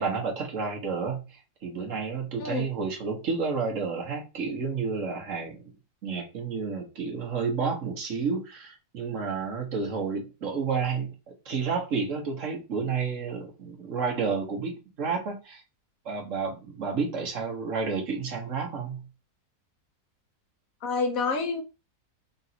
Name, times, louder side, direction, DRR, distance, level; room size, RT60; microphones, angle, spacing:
voice 1, 0.0-5.6 6.0-15.6 16.0-19.1, right 5 dB, 55° right, 1.2 m, -31 dB
voice 2, 20.8-21.6, left 4 dB, 70° left, 1.0 m, -28 dB
3.9 x 2.5 x 4.2 m
omnidirectional pair, 1.7 m